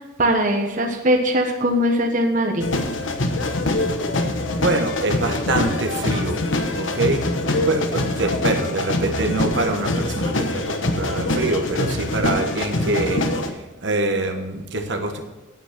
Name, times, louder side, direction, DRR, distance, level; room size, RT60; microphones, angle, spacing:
voice 1, 0.2-2.7, equal, 40° right, 2 dB, 1.2 m, -20 dB
sound 1, 2.6-13.5, left 2 dB, 70° left, 1.2 m, -24 dB
voice 2, 4.6-6.4 6.7-7.2 7.6-15.2, right 2 dB, 65° right, 4 dB, 1.3 m, -24 dB
9.3 x 9.2 x 6.0 m, 1.2 s
head